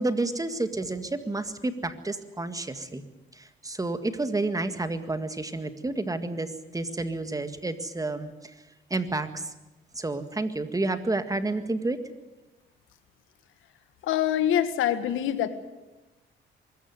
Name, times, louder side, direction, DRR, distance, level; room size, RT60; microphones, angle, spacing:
voice 1, 0.0-3.0 3.3-8.5 8.9-9.5 10.0-12.0, right 2 dB, 15° right, 9 dB, 1.9 m, -30 dB
voice 2, 14.0-15.5, left 10 dB, 90° left, 11 dB, 1.6 m, -25 dB
24.0 x 14.5 x 9.6 m, 1.1 s
cardioid pair, 90°, 20 cm